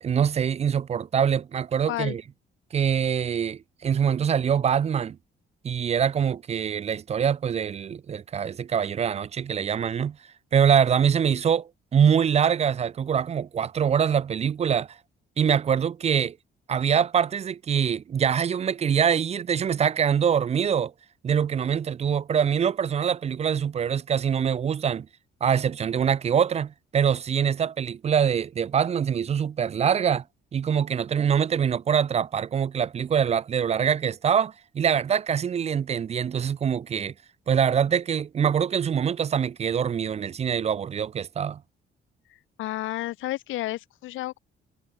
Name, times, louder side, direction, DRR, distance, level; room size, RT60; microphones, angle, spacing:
voice 1, 0.0-2.2 2.7-5.2 5.6-10.2 10.5-15.0 15.4-16.4 16.7-20.9 21.2-25.1 25.4-30.2 30.5-37.1 37.5-41.6, right 8 dB, 35° right, 0.4 m, -24 dB
voice 2, 42.6-44.4, left 16 dB, 85° left, 1.0 m, -31 dB
cardioid pair, 90°, 20 cm